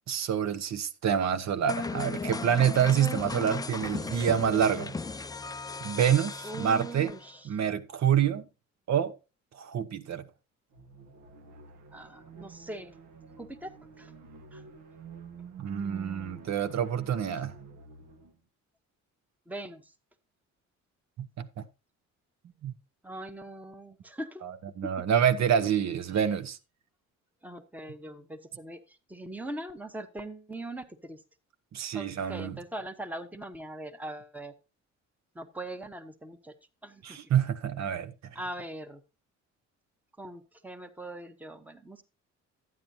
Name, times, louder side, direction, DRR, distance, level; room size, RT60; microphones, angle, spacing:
voice 1, 0.1-4.9 5.8-7.1 7.4-8.4 8.9-9.1 9.5-10.2 15.6-17.6 21.2-21.6 22.6-22.8 24.4-26.6 31.7-32.6 37.0-38.3, right 8 dB, 65° right, 1.0 m, -27 dB
sound 1, 1.7-7.4, left 4 dB, 15° left, 0.4 m, -36 dB
voice 2, 6.4-7.5 11.9-12.9 13.4-13.7 14.0-14.1 14.5-14.6 19.5-19.9 23.0-24.4 24.8-25.0 27.4-31.2 31.9-34.5 35.3-36.5 36.8-37.2 38.3-39.0 40.2-42.0, right 1 dB, 5° right, 1.1 m, -41 dB
sound 2, 10.7-18.4, right 6 dB, 85° right, 1.5 m, -48 dB
12.0 x 9.3 x 2.7 m
cardioid pair, 90°, 30 cm